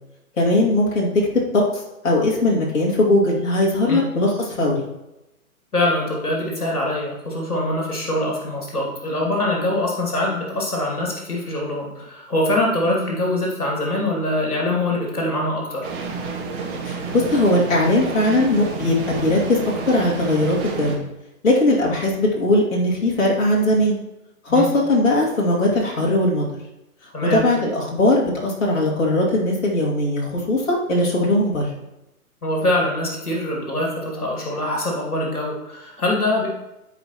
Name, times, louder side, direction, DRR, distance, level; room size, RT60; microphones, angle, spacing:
voice 1, 0.4-4.9 12.9-13.1 16.8-21.0 21.4-24.0 24.4-26.4 27.3-31.7, left 1 dB, 60° left, -4 dB, 2.4 m, -19 dB
voice 2, 5.7-15.9 24.5-24.7 27.1-27.5 32.4-36.5, left 1 dB, 75° left, -2 dB, 2.5 m, -23 dB
sound 1, 15.8-21.0, right 4 dB, 35° right, 2.1 m, -30 dB
13.5 x 5.0 x 3.0 m, 0.93 s
figure-of-eight pair, 125°, 45 cm